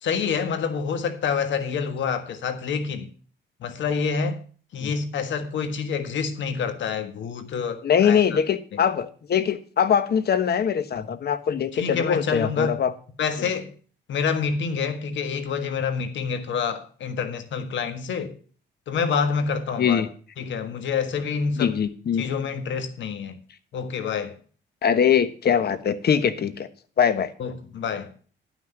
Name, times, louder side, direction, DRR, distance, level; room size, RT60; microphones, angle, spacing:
voice 1, 0.0-3.1 3.6-4.4 4.7-8.4 8.7-8.8 11.7-12.7 13.2-13.7 14.1-18.3 18.9-20.1 20.4-21.7 22.2-23.4 23.7-24.3 27.4-28.1, left 6 dB, 70° left, 1.5 m, -27 dB
voice 2, 7.8-12.9 13.4-13.5 19.8-20.1 21.6-22.2 24.8-26.7 27.0-27.3, left 8 dB, 55° left, 1.3 m, -22 dB
11.5 x 6.1 x 7.9 m
cardioid pair, 90°, 20 cm